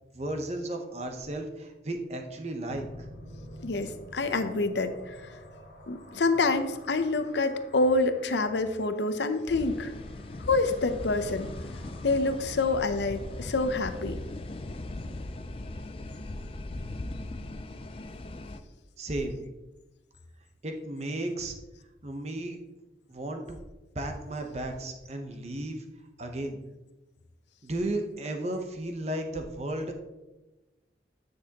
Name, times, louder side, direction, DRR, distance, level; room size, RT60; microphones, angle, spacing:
voice 1, 0.1-2.9 19.0-19.4 20.6-21.5 22.0-22.6 23.1-23.6 23.9-25.8 26.2-26.6 27.6-29.9, right 1 dB, 40° right, 4 dB, 0.8 m, -34 dB
sound 1, 2.7-15.8, left 1 dB, 60° left, 2.4 m, -50 dB
voice 2, 3.6-5.2 5.9-9.9 10.5-11.5 12.0-14.2, left 3 dB, 80° left, 9 dB, 0.6 m, -27 dB
sound 2, 9.5-18.6, left 2 dB, 30° left, 0.4 m, -39 dB
9.6 x 6.2 x 2.9 m, 1.1 s
head